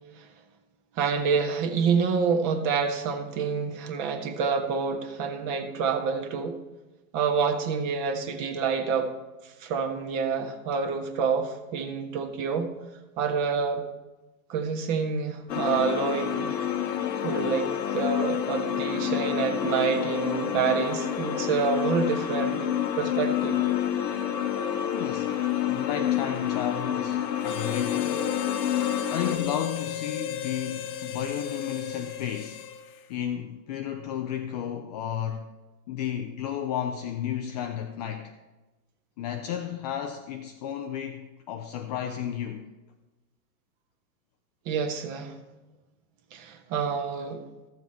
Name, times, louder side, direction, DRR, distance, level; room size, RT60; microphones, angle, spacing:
voice 1, 1.0-6.6 7.1-9.1 9.6-12.7 13.2-13.8 14.5-16.5 17.2-22.7 23.0-23.6 44.6-45.3 46.3-47.4, right 5 dB, 40° right, 1.3 m, -27 dB
sound 1, 15.5-29.4, left 10 dB, 85° left, 1.1 m, -28 dB
sound 2, 17.4-27.5, right 1 dB, 20° right, 0.5 m, -42 dB
voice 2, 24.9-25.4 25.7-28.3 29.1-32.7 33.1-35.5 35.9-38.3 39.2-42.7, left 10 dB, 30° left, 0.4 m, -33 dB
Harmonica, 27.4-33.1, left 7 dB, 60° left, 1.0 m, -35 dB
13.5 x 7.2 x 4.3 m
hypercardioid pair, 125°, 48 cm